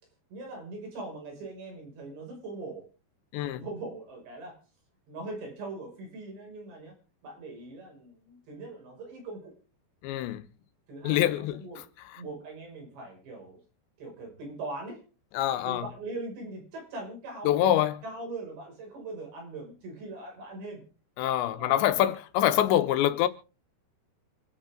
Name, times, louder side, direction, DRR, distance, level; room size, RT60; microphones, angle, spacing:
voice 1, 0.3-2.8 3.4-4.6 5.1-6.9 7.2-9.5 10.9-11.8 12.1-13.6 14.0-15.0 15.6-20.8 21.5-21.8, right 2 dB, 80° right, 8.1 m, -41 dB
voice 2, 3.3-3.6 10.0-10.4 11.0-11.6 15.3-15.9 17.5-18.0 21.2-23.3, left 12 dB, 90° left, 3.2 m, -25 dB
26.5 x 9.1 x 3.7 m
omnidirectional pair, 5.0 m